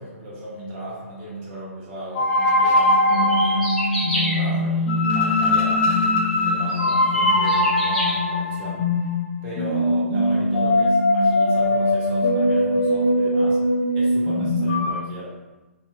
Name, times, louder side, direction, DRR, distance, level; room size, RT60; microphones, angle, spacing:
voice 1, 0.0-3.7 4.1-5.9 6.4-8.9 9.4-13.6 13.9-15.3, equal, 30° right, -6 dB, 1.3 m, -36 dB
sound 1, 2.1-14.9, left 1 dB, 40° left, 0.8 m, -20 dB
sound 2, 3.1-4.4 6.0-6.1 6.7-8.1, left 1 dB, ahead, 1.2 m, -28 dB
4.0 x 2.9 x 2.3 m, 1.1 s
hypercardioid pair, 130°, 8 cm